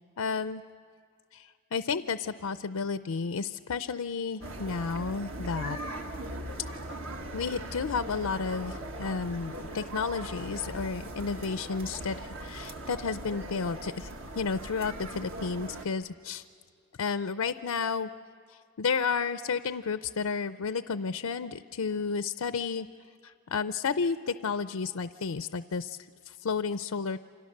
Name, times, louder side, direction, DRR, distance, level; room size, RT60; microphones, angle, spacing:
voice 1, 0.2-0.6 1.3-5.8 7.3-16.5 17.0-18.1 18.5-22.9 23.2-27.2, left 5 dB, 80° left, 12 dB, 0.5 m, -32 dB
sound 1, 4.4-15.9, right 1 dB, 60° right, 1.8 m, -40 dB
29.0 x 26.0 x 6.6 m, 2.3 s
head